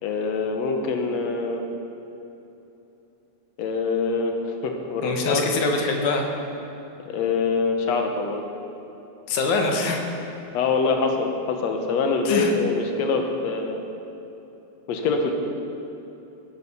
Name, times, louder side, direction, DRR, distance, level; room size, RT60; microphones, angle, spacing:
voice 1, 0.0-1.6 3.6-5.4 7.0-8.4 10.5-13.8 14.9-15.3, left 4 dB, 65° left, 3 dB, 2.3 m, -24 dB
voice 2, 5.0-6.3 9.3-10.0 12.3-12.5, left 3 dB, 85° left, 2 dB, 2.8 m, -24 dB
16.5 x 10.5 x 5.6 m, 2.9 s
omnidirectional pair, 3.4 m